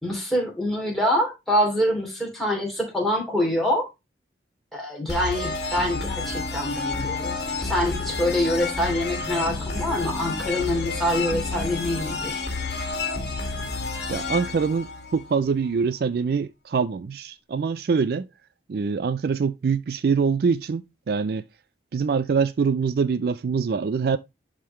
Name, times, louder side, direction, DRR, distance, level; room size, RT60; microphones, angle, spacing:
voice 1, 0.0-3.9 4.7-12.4, equal, ahead, 2.8 m, -25 dB
sound 1, 5.1-15.7, left 3 dB, 60° left, 1.8 m, -30 dB
voice 2, 14.1-18.3 18.7-21.4 21.9-24.2, right 5 dB, 55° right, 0.3 m, -24 dB
11.0 x 3.8 x 3.1 m
head